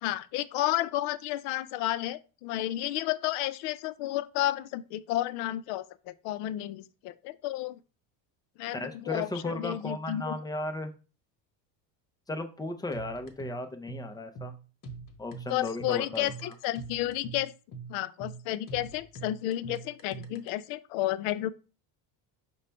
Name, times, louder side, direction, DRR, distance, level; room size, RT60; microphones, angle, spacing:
voice 1, 0.0-7.8 8.6-10.3 15.5-17.5 17.9-21.5, left 14 dB, 65° left, 0.5 m, -32 dB
voice 2, 8.7-10.9 12.3-14.5 15.2-16.5, left 2 dB, 10° left, 0.4 m, -36 dB
sound 1, 12.9-20.5, right 4 dB, 40° left, 1.2 m, -43 dB
4.9 x 2.3 x 4.3 m
supercardioid pair, 100°, 49 cm